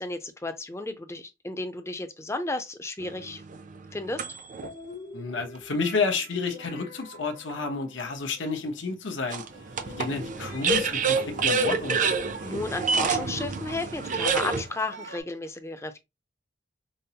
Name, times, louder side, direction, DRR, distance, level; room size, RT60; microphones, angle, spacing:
voice 1, 0.0-3.4 3.9-4.3 12.4-16.0, left 2 dB, 15° left, 0.5 m, -33 dB
sound 1, 3.0-4.7 5.4-5.5 9.3-14.6, right 5 dB, 45° right, 0.5 m, -28 dB
sound 2, 4.6-8.8 9.9-11.8, left 2 dB, 60° left, 1.4 m, -45 dB
voice 2, 5.1-9.4 10.0-12.0, left 4 dB, 75° left, 0.9 m, -30 dB
sound 3, 9.3-15.2, right 3 dB, 70° right, 1.0 m, -49 dB
5.2 x 2.0 x 2.8 m
head